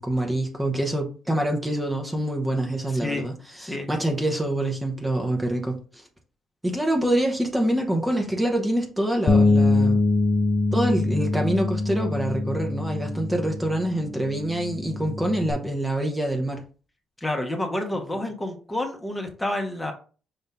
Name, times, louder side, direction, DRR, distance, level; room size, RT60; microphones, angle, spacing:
voice 1, 0.0-6.0 6.6-10.0 10.7-16.6, right 1 dB, 10° right, 2 dB, 1.0 m, -26 dB
Bass guitar, 9.3-15.5, left 3 dB, 50° left, 0.8 m, -23 dB
voice 2, 17.2-19.9, left 1 dB, 10° left, 3 dB, 1.1 m, -29 dB
5.5 x 2.7 x 3.5 m, 0.37 s
cardioid pair, 90°, 0 cm